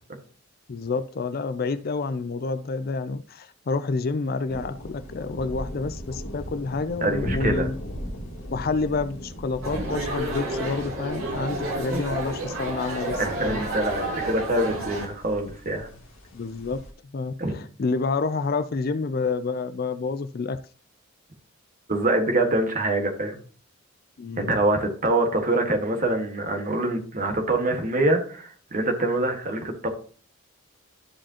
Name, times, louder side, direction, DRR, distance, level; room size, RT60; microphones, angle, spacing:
voice 1, 0.7-7.7 8.5-13.6 16.3-16.8 17.1-20.6 24.2-24.6, left 4 dB, 45° left, 0.4 m, -29 dB
sound 1, 4.5-16.9, equal, 75° left, 2.0 m, -38 dB
voice 2, 7.0-7.7 11.9-12.0 13.2-15.9 17.4-17.6 21.9-23.4 24.4-29.9, right 2 dB, 40° right, 1.6 m, -25 dB
sound 2, 9.6-15.1, right 1 dB, 80° right, 2.6 m, -31 dB
13.0 x 5.0 x 2.9 m
head